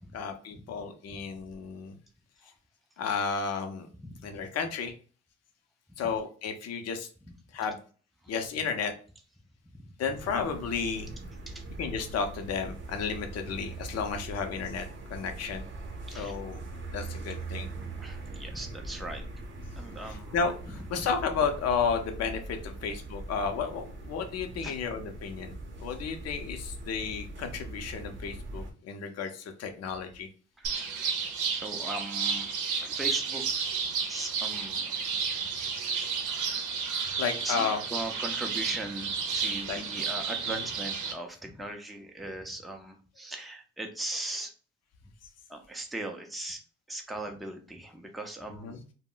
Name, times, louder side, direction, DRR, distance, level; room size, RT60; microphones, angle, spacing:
voice 1, 0.1-2.0 3.0-3.9 4.2-4.9 6.0-7.1 7.5-7.8 8.3-8.9 10.0-11.1 11.8-15.7 16.1-16.6 16.9-17.7 20.1-20.5 20.9-30.3 37.2-37.8 39.7-39.8 48.6-48.8, left 6 dB, 55° left, 5 dB, 0.6 m, -32 dB
sound 1, 10.1-28.7, right 2 dB, 40° right, 0.7 m, -41 dB
voice 2, 11.5-11.8 16.1-16.3 18.0-19.2 19.8-20.5 21.0-21.1 24.6-24.7 30.6-31.1 31.5-33.8 34.1-35.2 35.6-36.1 37.4-37.6 37.9-44.5 45.5-46.6 46.9-48.8, right 1 dB, ahead, 3 dB, 0.4 m, -39 dB
sound 2, 30.6-41.1, right 5 dB, 80° right, 0.7 m, -32 dB
2.1 x 2.1 x 3.7 m, 0.40 s
cardioid pair, 90°, 30 cm